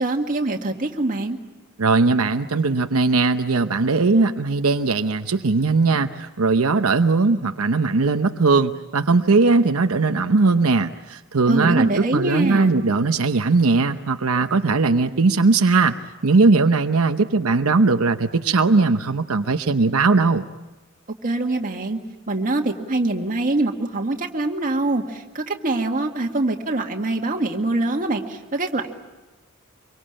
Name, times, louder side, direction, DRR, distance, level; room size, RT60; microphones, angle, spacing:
voice 1, 0.0-1.4 11.5-12.8 21.2-22.0 22.3-28.9, right 2 dB, 40° right, 2 dB, 2.0 m, -24 dB
voice 2, 1.8-15.9 16.2-20.4, right 3 dB, 90° right, 7 dB, 0.8 m, -19 dB
25.5 x 23.5 x 8.8 m, 1.1 s
head